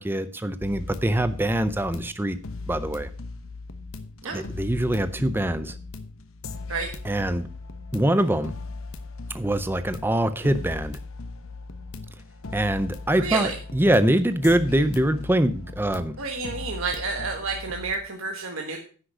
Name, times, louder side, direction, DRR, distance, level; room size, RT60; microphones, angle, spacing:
voice 1, 0.0-2.4 2.7-3.1 4.3-5.8 7.0-7.5 7.9-8.5 9.3-11.0 12.5-16.2, right 1 dB, 10° right, 12 dB, 0.5 m, -24 dB
sound 1, 0.6-18.0, left 3 dB, 65° left, 0.9 m, -38 dB
voice 2, 13.1-13.5 16.2-18.8, right 4 dB, 65° right, 2 dB, 1.3 m, -30 dB
9.9 x 6.3 x 6.1 m, 0.40 s
head